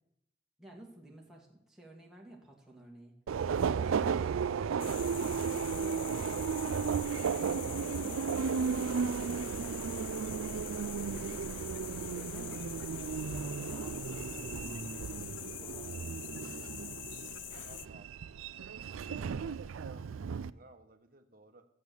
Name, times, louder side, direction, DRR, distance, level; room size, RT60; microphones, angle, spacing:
voice 1, 0.6-3.1 3.8-6.9 7.2-10.3 10.5-11.5 11.9-16.7 19.0-19.4, right 1 dB, ahead, -3 dB, 2.0 m, -53 dB
Subway metro underground, 3.3-20.5, right 6 dB, 90° right, 0.4 m, -34 dB
sound 1, 4.8-17.9, left 16 dB, 65° left, 0.3 m, -45 dB
voice 2, 17.7-18.3 19.3-21.7, right 2 dB, 45° right, 7 dB, 1.2 m, -58 dB
12.5 x 7.7 x 7.0 m, 0.81 s
head